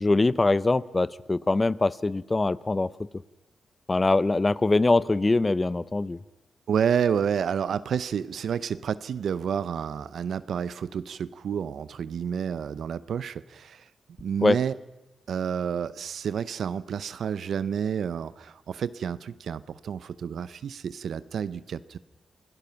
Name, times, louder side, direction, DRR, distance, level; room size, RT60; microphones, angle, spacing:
voice 1, 0.0-2.9 3.9-6.2 14.4-14.6, left 2 dB, 25° left, 19 dB, 0.7 m, -23 dB
voice 2, 6.7-13.9 14.2-14.7 15.3-22.0, right 7 dB, 75° right, 16 dB, 0.7 m, -29 dB
27.5 x 18.0 x 5.8 m, 1.0 s
cardioid pair, 70°, 0 cm